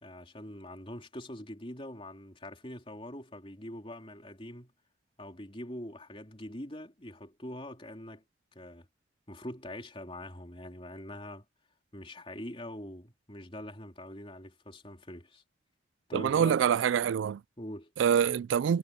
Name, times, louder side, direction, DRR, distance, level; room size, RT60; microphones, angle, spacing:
voice 1, 0.0-4.7 5.2-8.2 8.6-8.9 9.3-11.4 11.9-15.4 16.1-16.6 17.6-17.9, left 1 dB, 30° left, 3.7 m, -43 dB
voice 2, 16.1-17.4 18.0-18.8, right 8 dB, 85° right, 0.3 m, -25 dB
head